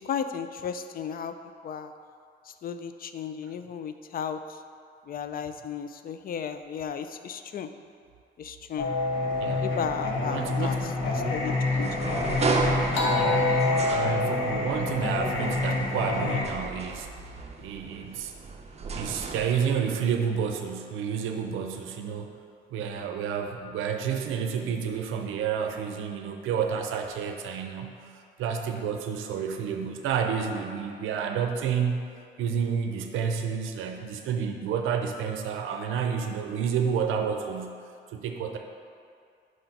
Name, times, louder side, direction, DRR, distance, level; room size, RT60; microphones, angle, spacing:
voice 1, 0.0-1.3 1.6-1.9 2.6-4.4 5.1-7.7 8.4-8.9 9.6-10.8 11.0-12.1, left 7 dB, 50° left, 9 dB, 0.4 m, -34 dB
Singing, 8.8-16.4, left 3 dB, 80° left, 1.0 m, -27 dB
voice 2, 10.3-10.9 13.1-13.6 13.9-17.1 17.6-18.3 18.9-22.3 22.7-32.0 32.4-37.7 38.1-38.6, right 7 dB, 85° right, 4 dB, 0.5 m, -30 dB
sound 1, 11.8-14.7 15.3-19.5, right 4 dB, 35° right, 0.6 m, -33 dB
5.0 x 3.9 x 5.7 m, 2.3 s
cardioid pair, 90°, 20 cm